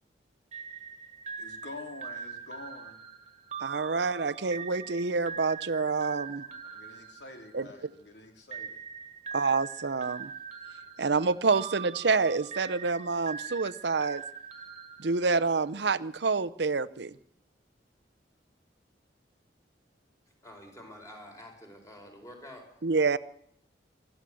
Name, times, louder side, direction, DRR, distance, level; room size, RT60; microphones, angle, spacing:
sound 1, 0.5-7.9 8.5-15.7, right 6 dB, 35° right, 1.7 m, -42 dB
voice 1, 1.4-3.0 6.4-8.8, left 2 dB, 75° left, 4 dB, 3.3 m, -47 dB
voice 2, 3.6-6.5 7.5-7.7 9.3-10.3 11.0-14.2 15.0-17.1 22.8-23.2, right 4 dB, 70° right, 14 dB, 0.7 m, -27 dB
voice 3, 20.4-22.8, left 1 dB, 15° left, 3 dB, 4.7 m, -48 dB
24.0 x 14.0 x 7.7 m, 0.71 s
head